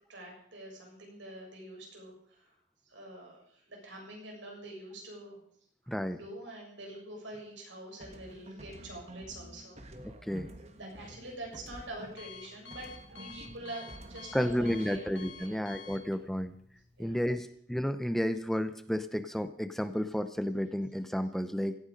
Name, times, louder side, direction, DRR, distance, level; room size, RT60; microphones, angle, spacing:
voice 1, 0.1-2.6 2.8-5.4 5.8-9.8 10.7-15.8 17.0-17.4, right 1 dB, 80° right, 0 dB, 7.3 m, -46 dB
voice 2, 5.9-6.2 10.2-10.5 14.3-16.5 17.0-21.8, equal, ahead, 10 dB, 0.6 m, -32 dB
sound 1, 8.0-12.4 12.7-15.1, right 1 dB, 35° right, 1.6 m, -49 dB
Alarm, 10.7-17.1, left 6 dB, 70° left, 3.1 m, -52 dB
17.5 x 15.5 x 5.2 m, 0.63 s
head